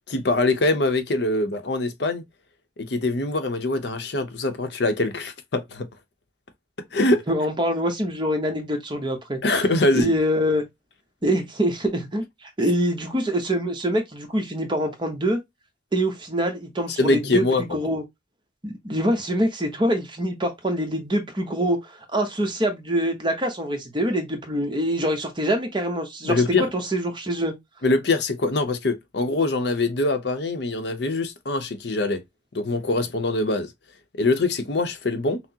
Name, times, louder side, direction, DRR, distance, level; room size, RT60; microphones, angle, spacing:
voice 1, 0.1-2.2 2.8-5.9 6.9-7.2 9.4-10.1 17.0-17.8 26.2-26.7 27.8-32.2 32.5-33.7 34.2-35.4, left 2 dB, 65° left, 0.7 m, -23 dB
voice 2, 7.3-9.4 9.9-10.6 11.2-15.4 15.9-18.0 18.6-27.5, equal, 25° right, 0.9 m, -25 dB
5.8 x 2.0 x 2.8 m
head